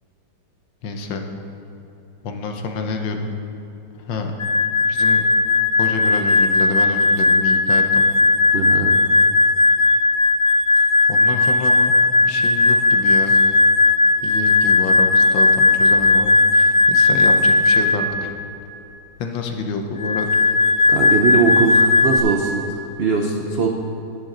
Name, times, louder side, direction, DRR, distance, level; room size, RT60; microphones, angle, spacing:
voice 1, 0.8-1.2 2.2-3.3 4.1-4.3 4.9-5.2 5.8-8.0 11.1-11.9 12.2-13.3 14.2-18.3 19.2-20.3, left 4 dB, 90° left, 4 dB, 1.7 m, -28 dB
sound 1, 4.4-18.1 20.0-22.2, left 3 dB, 55° left, 0.8 m, -16 dB
voice 2, 8.5-9.0 13.3-13.4 20.9-23.7, right 5 dB, 75° right, 1 dB, 0.5 m, -21 dB
10.5 x 10.5 x 3.9 m, 2.8 s
omnidirectional pair, 2.0 m